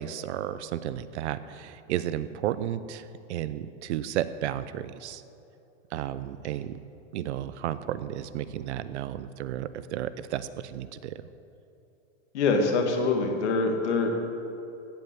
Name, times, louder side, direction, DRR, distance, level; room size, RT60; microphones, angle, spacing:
voice 1, 0.0-5.2 5.9-6.8 7.1-11.2, right 11 dB, 85° right, 14 dB, 0.8 m, -33 dB
voice 2, 12.3-14.1, left 3 dB, 90° left, 2 dB, 2.2 m, -24 dB
15.5 x 5.6 x 7.8 m, 2.8 s
supercardioid pair, 155°, 33 cm